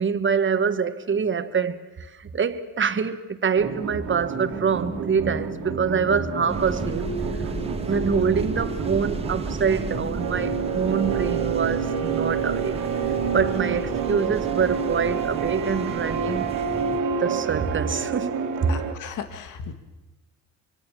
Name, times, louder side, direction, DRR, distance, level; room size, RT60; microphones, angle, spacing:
voice 1, 0.0-7.4 7.9-12.7 13.1-16.5 17.2-18.7, right 6 dB, 40° right, 1.6 m, -25 dB
sound 1, 3.5-18.9, right 6 dB, 90° right, 2.9 m, -28 dB
sound 2, 6.5-17.0, right 3 dB, 20° right, 1.9 m, -34 dB
voice 2, 18.7-19.7, left 7 dB, 80° left, 2.2 m, -36 dB
25.0 x 23.5 x 7.5 m
cardioid pair, 90°, 30 cm